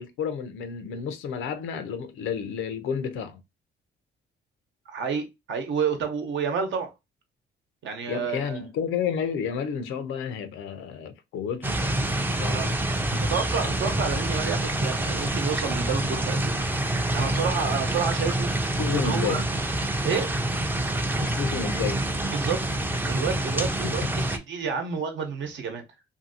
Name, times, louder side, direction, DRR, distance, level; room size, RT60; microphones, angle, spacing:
voice 1, 0.0-3.4 8.1-12.8 13.1-13.2 18.8-19.5 21.2-22.0 23.8-24.2, left 7 dB, 85° left, 0.6 m, -31 dB
voice 2, 4.9-6.9 7.8-8.6 12.5-12.7 13.2-16.6 17.1-18.5 18.9-19.4 20.0-20.3 22.3-22.6 23.1-25.8, right 6 dB, 70° right, 0.9 m, -29 dB
sound 1, 11.6-24.4, right 1 dB, 10° right, 0.4 m, -27 dB
2.7 x 2.7 x 2.6 m
cardioid pair, 90°, 20 cm